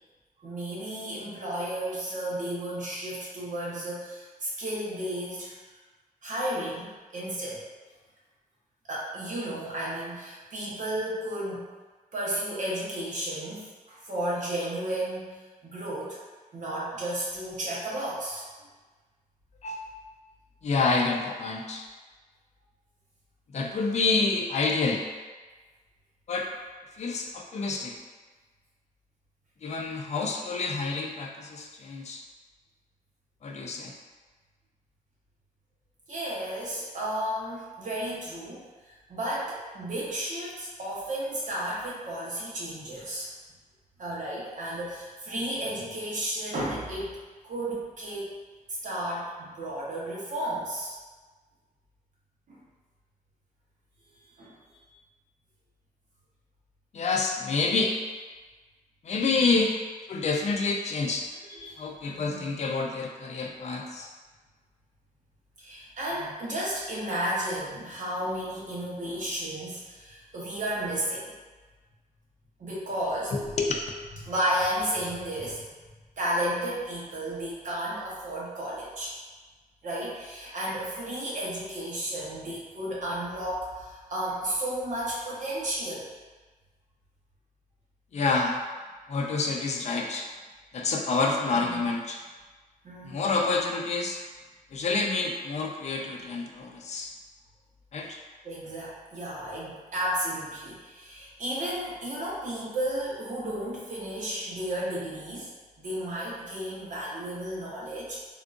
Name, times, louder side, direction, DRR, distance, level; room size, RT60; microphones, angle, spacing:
voice 1, 0.4-5.5 6.2-7.6 8.9-11.7 12.1-16.2 16.5-18.4 36.1-43.3 44.0-47.2 47.4-48.3 48.8-51.0 52.5-52.6 54.4-54.5 54.8-54.9 59.3-59.6 61.5-62.4 65.6-71.3 72.6-73.3 74.2-75.7 76.2-79.1 79.8-86.1 91.5-91.8 92.8-93.2 98.4-105.5 105.8-108.2, right 1 dB, 60° right, -6 dB, 0.9 m, -33 dB
voice 2, 20.6-21.8 23.5-25.0 26.3-26.5 27.0-27.9 29.6-32.2 33.4-33.9 56.9-57.9 59.0-59.7 60.1-61.3 61.8-64.1 73.3-73.9 88.1-88.6 89.1-90.3 90.7-92.2 93.0-94.2 94.7-97.1 97.9-98.2, left 3 dB, 50° left, 1 dB, 0.4 m, -28 dB
3.6 x 2.5 x 2.4 m, 1.3 s
wide cardioid pair, 140°, 15 cm